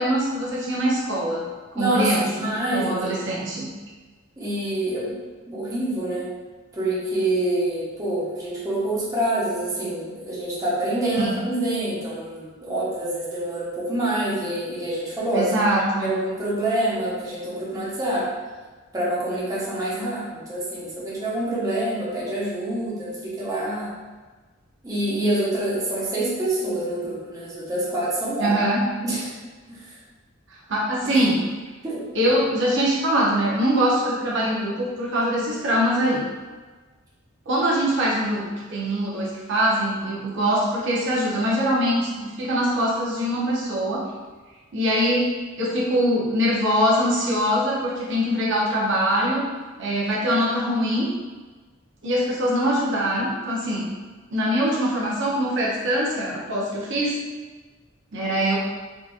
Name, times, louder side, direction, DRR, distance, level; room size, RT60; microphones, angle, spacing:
voice 1, 0.0-3.7 11.1-11.3 15.3-16.1 28.4-28.9 30.7-31.4 32.1-36.3 37.5-44.1 44.7-49.5 49.8-51.1 52.0-53.9 54.3-57.2 58.1-58.6, equal, 60° right, -5 dB, 0.7 m, -23 dB
voice 2, 1.7-3.0 4.4-5.1 5.5-6.3 6.7-15.5 16.0-18.3 18.9-23.9 24.8-28.6 29.0-29.3 29.7-30.0 31.1-31.2 31.8-32.0, right 1 dB, 15° right, -8 dB, 0.8 m, -26 dB
3.7 x 2.5 x 2.4 m, 1.3 s
head